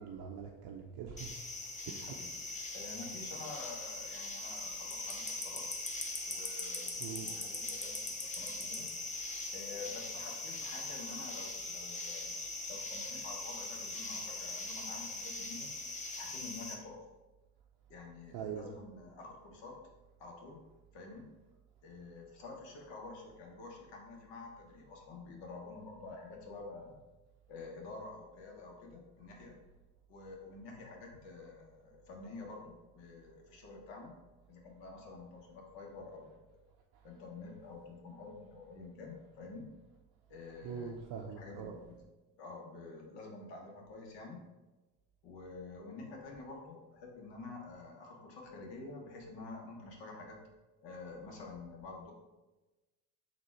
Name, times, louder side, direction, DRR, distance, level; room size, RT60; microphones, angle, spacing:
voice 1, 0.0-1.4 1.9-2.2 6.6-6.7 7.0-7.3 18.3-18.7 36.9-37.0 40.6-41.7, right 7 dB, 50° right, 0 dB, 0.6 m, -43 dB
sound 1, 1.2-16.7, left 2 dB, 15° left, 0.7 m, -41 dB
voice 2, 2.7-5.6 6.2-8.9 9.5-12.3 12.7-15.7 16.2-17.0 17.9-19.8 20.2-20.6 20.9-21.3 21.8-26.9 27.5-29.5 30.1-34.1 34.5-36.4 37.0-39.7 40.3-40.9 41.4-41.8 42.4-44.4 45.2-50.4 50.8-52.1, left 3 dB, 65° left, 0 dB, 1.1 m, -48 dB
4.0 x 2.4 x 4.5 m, 1.1 s
hypercardioid pair, 65°, 47 cm